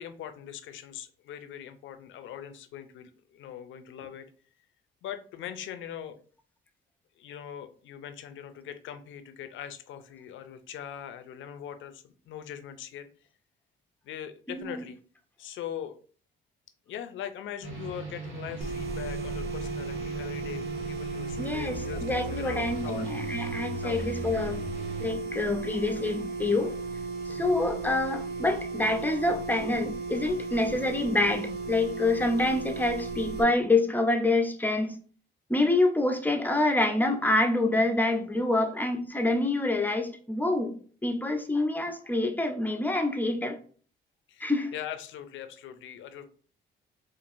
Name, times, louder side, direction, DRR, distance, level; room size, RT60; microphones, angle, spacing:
voice 1, 0.0-4.3 5.0-6.2 7.2-13.1 14.0-15.0 15.4-16.0 16.9-23.1 23.8-24.0 27.3-27.5 44.3-46.3, left 10 dB, 75° left, 0.5 m, -41 dB
voice 2, 14.5-14.8 21.4-24.6 25.0-26.8 27.2-35.0 35.5-40.7 41.0-43.6 44.4-44.7, left 2 dB, 10° left, 0.6 m, -27 dB
sound 1, 17.6-25.1, right 2 dB, 70° right, 1.5 m, -39 dB
sound 2, 18.6-33.4, right 3 dB, 50° right, 0.6 m, -35 dB
4.5 x 2.5 x 2.5 m
cardioid pair, 90°, 20 cm